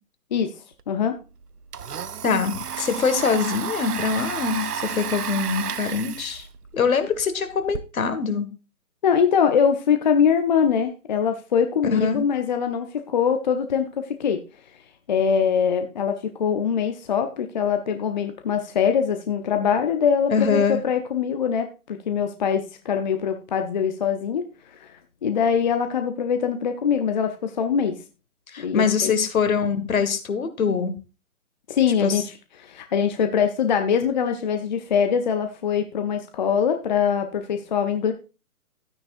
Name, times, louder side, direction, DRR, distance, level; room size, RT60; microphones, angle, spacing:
Domestic sounds home sounds, 0.8-0.9 1.2-7.8, right 8 dB, 90° right, 0.8 m, -32 dB
voice 1, 2.2-6.5 6.7-8.5 11.9-12.2 20.3-20.8 28.5-30.9 32.0-32.2, left 5 dB, 65° left, 9 dB, 1.8 m, -23 dB
voice 2, 9.0-14.4 15.1-24.5 24.8-24.9 25.2-28.0 28.6-29.1 31.7-38.1, left 7 dB, 30° left, 6 dB, 0.6 m, -23 dB
12.5 x 9.4 x 2.5 m, 0.31 s
hypercardioid pair, 145°, 45 cm